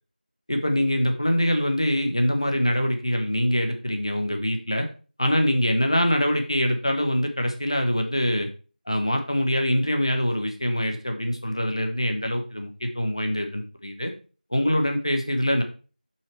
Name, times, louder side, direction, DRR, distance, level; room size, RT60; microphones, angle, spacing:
voice 1, 0.5-4.9 5.2-8.5 8.9-14.1 14.5-15.6, equal, 35° left, 5 dB, 1.1 m, -24 dB
7.4 x 5.7 x 3.3 m, 0.36 s
figure-of-eight pair, 175°, 5 cm